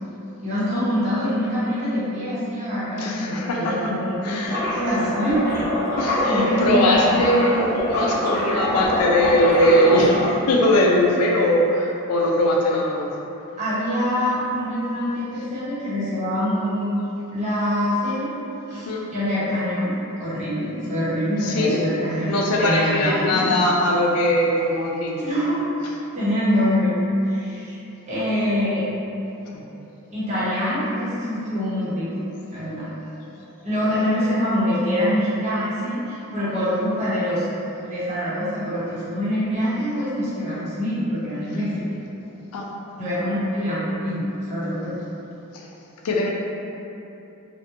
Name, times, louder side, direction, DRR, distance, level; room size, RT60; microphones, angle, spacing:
voice 1, 0.4-5.4 6.2-7.4 13.6-17.0 17.3-18.3 18.7-19.9 20.2-23.5 25.2-25.6 26.1-26.9 27.3-27.8 28.1-28.8 30.1-32.2 32.5-32.8 33.6-37.5 37.8-41.9 43.0-44.2 44.5-45.0, equal, 30° right, -11 dB, 0.8 m, -24 dB
voice 2, 3.0-3.9 4.2-4.6 5.9-10.2 10.5-13.1 18.7-19.0 21.4-21.8 22.3-25.3 29.5-29.6 40.5-40.6 42.5-42.7 45.5-45.6 46.0-46.3, left 1 dB, 80° left, -2 dB, 0.4 m, -21 dB
sound 1, 4.5-10.3, left 1 dB, 15° left, 0.7 m, -24 dB
2.6 x 2.1 x 2.6 m, 2.9 s
head